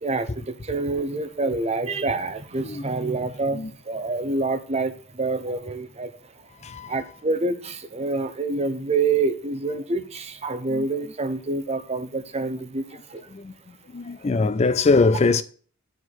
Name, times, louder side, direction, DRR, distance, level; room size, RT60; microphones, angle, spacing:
voice 1, 0.0-6.1 6.9-12.8 13.1-13.2, right 3 dB, 30° right, 0.8 m, -27 dB
voice 2, 6.6-6.9 10.7-10.8 13.3-13.5 13.9-15.4, left 3 dB, 30° left, 0.4 m, -22 dB
9.8 x 4.6 x 4.0 m
head